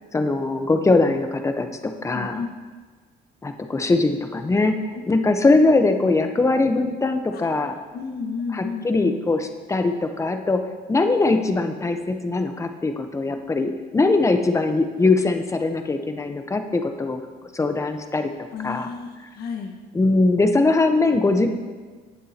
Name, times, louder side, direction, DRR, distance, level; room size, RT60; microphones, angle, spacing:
voice 1, 0.1-2.4 3.4-7.7 8.5-10.6 10.9-17.2 17.5-18.3 18.6-18.9 19.9-21.5, left 3 dB, 15° left, 6 dB, 0.9 m, -21 dB
voice 2, 2.1-2.5 4.9-5.0 7.3-7.5 7.9-8.9 18.5-19.8, left 5 dB, 70° left, 3 dB, 1.5 m, -32 dB
17.5 x 7.3 x 2.9 m, 1.4 s
cardioid pair, 110°, 17 cm